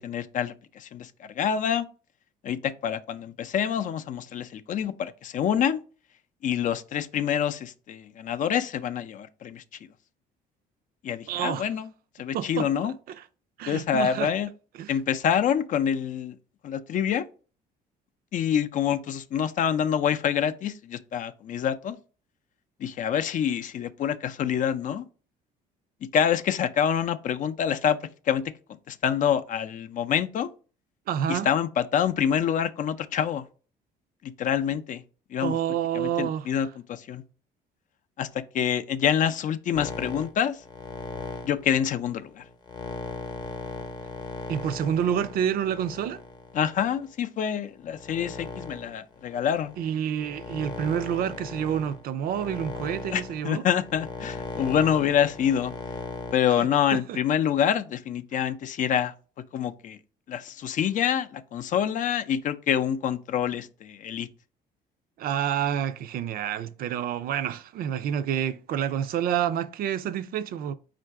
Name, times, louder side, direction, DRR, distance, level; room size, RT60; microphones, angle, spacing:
voice 1, 0.0-1.9 2.4-5.8 6.4-9.6 11.0-11.9 12.2-12.9 13.7-14.5 14.9-16.4 16.6-17.3 18.3-22.0 22.8-25.0 26.1-28.0 28.3-28.4 28.9-30.5 31.3-33.5 34.2-35.0 35.3-35.6 35.9-37.2 38.2-40.6 41.4-42.4 46.5-49.8 53.1-55.7 56.3-59.1 59.5-60.0 60.3-64.3, left 8 dB, 50° left, 0.4 m, -26 dB
voice 2, 11.3-11.7 12.3-13.3 13.6-14.3 14.8-15.0 31.1-31.5 35.4-36.5 44.5-46.2 49.8-53.7 56.5-57.2 65.2-70.7, right 9 dB, 60° right, 0.4 m, -28 dB
sound 1, 39.7-47.1 47.7-56.3, left 3 dB, 25° left, 0.8 m, -38 dB
4.6 x 2.5 x 4.4 m
cardioid pair, 110°, 17 cm